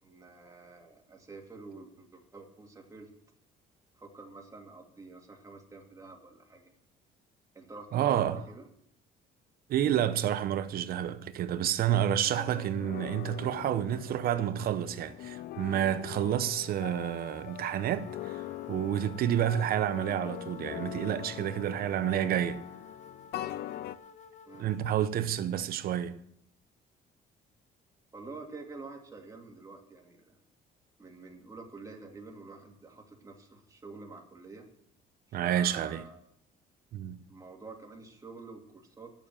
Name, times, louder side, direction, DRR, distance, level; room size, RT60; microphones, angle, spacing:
voice 1, 0.0-3.1 4.0-6.7 7.5-8.7 24.5-24.8 28.1-30.4 31.0-34.6 35.3-36.2 37.3-39.1, right 3 dB, 20° right, 2.5 m, -48 dB
voice 2, 7.9-8.4 9.7-22.6 24.6-26.2 35.3-36.0 36.9-37.2, right 10 dB, 60° right, 0.9 m, -29 dB
sound 1, 12.0-24.0, left 13 dB, 70° left, 0.7 m, -42 dB
sound 2, 16.6-25.1, left 6 dB, 45° left, 1.2 m, -51 dB
11.5 x 7.0 x 8.8 m
cardioid pair, 110°, 17 cm